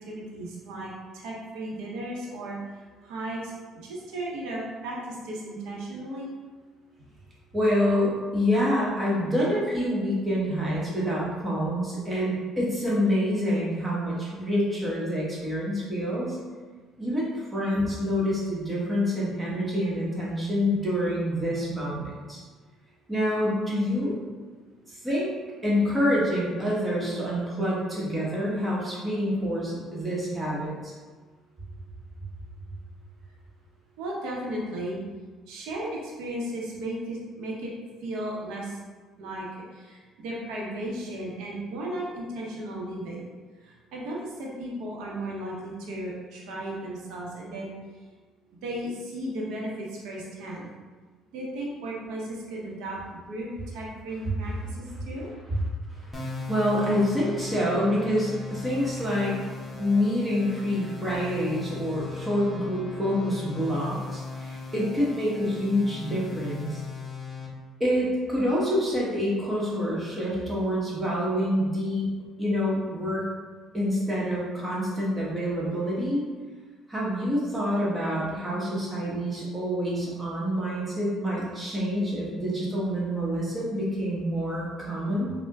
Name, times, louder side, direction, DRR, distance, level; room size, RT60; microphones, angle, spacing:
voice 1, 0.1-2.6 3.0-3.5 3.8-6.3 34.0-35.0 35.5-37.7 38.0-38.8 39.2-39.5 39.7-43.2 43.6-47.7 48.6-50.7 51.3-55.3, right 1 dB, 85° right, -3 dB, 0.7 m, -35 dB
voice 2, 7.5-16.4 17.0-22.4 23.1-24.1 25.0-25.3 25.6-30.9 54.9-55.0 55.9-59.4 59.8-66.8 67.8-72.1 72.4-73.3 73.7-76.2 76.9-85.3, equal, 15° right, -6 dB, 1.0 m, -27 dB
sound 1, 56.1-67.5, left 4 dB, 25° left, 0.6 m, -38 dB
4.3 x 2.1 x 2.3 m, 1.4 s
cardioid pair, 105°, 0 cm